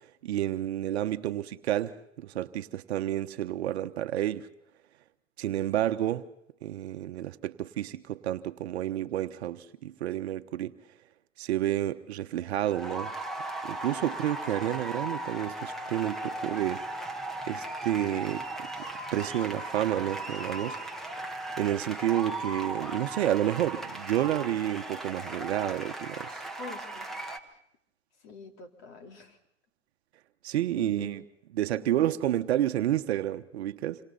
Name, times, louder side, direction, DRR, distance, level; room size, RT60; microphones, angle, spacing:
voice 1, 0.0-4.5 5.4-6.3 6.6-10.7 11.4-13.1 13.6-17.2 17.5-18.5 19.1-20.8 21.6-26.4 30.4-31.2 31.5-34.0, right 12 dB, 55° right, 1.2 m, -30 dB
sound 1, 12.4-27.4, right 2 dB, ahead, 1.4 m, -37 dB
voice 2, 26.6-27.1 27.4-27.5 28.2-29.4 30.7-31.2 31.9-32.2, left 4 dB, 40° left, 3.9 m, -46 dB
28.0 x 25.0 x 4.2 m
hypercardioid pair, 130°, 38 cm